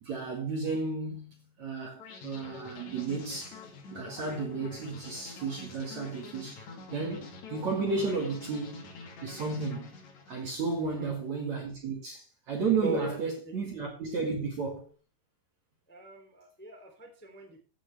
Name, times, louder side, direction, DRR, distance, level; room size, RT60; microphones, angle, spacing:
voice 1, 0.0-3.6 3.9-6.6 6.9-8.9 9.2-10.0 10.3-14.9, right 4 dB, 50° right, 2.6 m, -33 dB
sound 1, 2.0-11.0, left 4 dB, 50° left, 3.0 m, -47 dB
voice 2, 10.8-11.1 12.8-13.2 15.9-17.6, right 2 dB, 5° left, 1.8 m, -38 dB
15.0 x 8.8 x 3.4 m
omnidirectional pair, 5.2 m